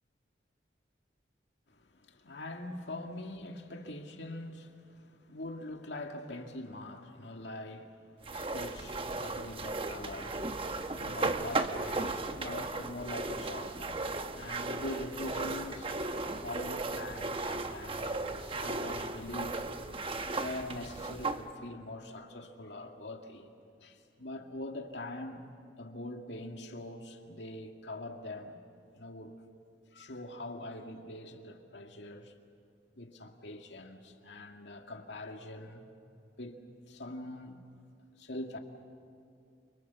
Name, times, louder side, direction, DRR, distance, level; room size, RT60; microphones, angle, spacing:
voice 1, 1.7-14.1 14.3-15.9 16.4-19.6 20.3-23.5 23.8-25.5 25.8-28.6 28.9-29.4 29.9-32.3 33.0-35.9 36.4-37.6 38.2-38.6, left 1 dB, 80° left, 2.2 m, -43 dB
sound 1, 8.2-21.4, right 3 dB, 30° right, 1.1 m, -36 dB
29.5 x 25.0 x 7.0 m
head